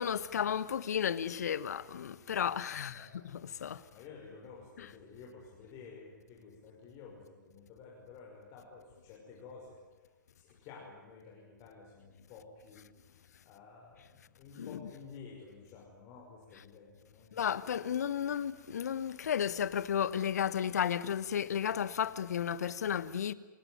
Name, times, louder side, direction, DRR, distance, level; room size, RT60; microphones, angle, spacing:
voice 1, 0.0-3.8 4.8-4.9 14.6-14.9 17.3-23.3, left 8 dB, 55° left, 1.2 m, -33 dB
voice 2, 2.7-3.1 3.9-9.8 10.3-12.9 13.4-17.3, left 5 dB, 30° left, 5.9 m, -52 dB
28.0 x 17.5 x 9.3 m
figure-of-eight pair, 115°, 10 cm